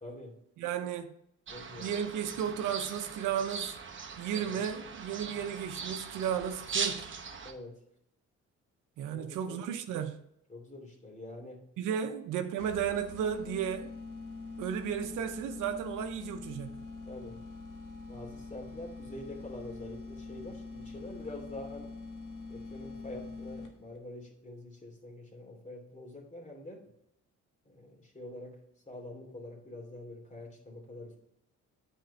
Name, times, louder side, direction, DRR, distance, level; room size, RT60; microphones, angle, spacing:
voice 1, 0.0-0.4 1.5-1.9 4.3-4.6 7.4-7.8 9.1-9.6 10.5-11.7 17.1-17.4 18.1-21.9 22.5-26.9 27.6-28.6 28.9-31.2, left 1 dB, 25° left, 2.8 m, -46 dB
voice 2, 0.6-1.1 1.8-3.8 4.2-7.1 9.0-10.2 11.8-13.9 14.6-16.9, right 8 dB, 85° right, 0.8 m, -34 dB
sound 1, 1.5-7.5, right 5 dB, 40° right, 1.1 m, -39 dB
sound 2, 12.6-24.0, left 3 dB, 90° left, 1.5 m, -44 dB
9.3 x 4.5 x 4.1 m
cardioid pair, 90°, 30 cm